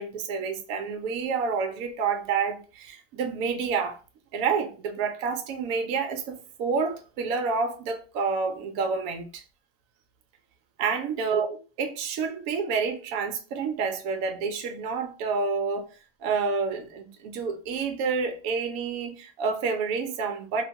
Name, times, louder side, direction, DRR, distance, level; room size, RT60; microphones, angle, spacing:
voice 1, 0.0-4.0 4.3-9.4 10.8-11.5 11.8-15.9 16.2-20.6, right 5 dB, 70° right, 1.0 m, -29 dB
3.0 x 2.2 x 2.7 m
omnidirectional pair, 1.6 m